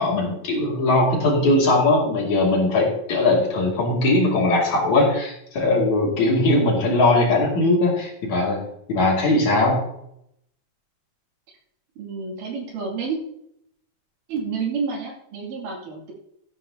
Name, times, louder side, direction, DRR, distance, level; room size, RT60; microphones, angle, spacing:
voice 1, 0.0-8.6 8.9-9.8, left 2 dB, 55° left, -2 dB, 3.6 m, -20 dB
voice 2, 12.0-13.2 14.3-16.1, right 5 dB, 65° right, -2 dB, 4.1 m, -29 dB
13.5 x 11.0 x 2.8 m, 0.75 s
omnidirectional pair, 4.1 m